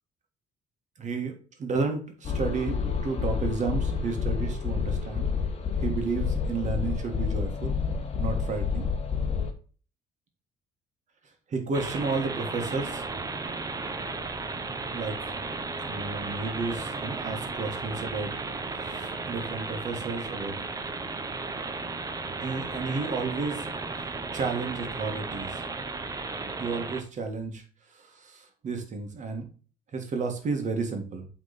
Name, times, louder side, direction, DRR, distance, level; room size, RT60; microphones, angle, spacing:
voice 1, 1.0-5.3 5.8-7.7 8.2-8.9 11.5-13.0 14.9-15.3 15.8-18.3 18.8-20.5 22.4-23.6 24.3-25.6 26.6-27.6 28.0-29.5 29.9-31.3, right 4 dB, 45° right, 4 dB, 1.7 m, -32 dB
sound 1, 2.2-9.5, left 6 dB, 35° left, 1.2 m, -29 dB
sound 2, 11.7-27.0, right 3 dB, 20° right, 0.7 m, -35 dB
8.3 x 3.6 x 4.1 m, 0.39 s
cardioid pair, 110°, 17 cm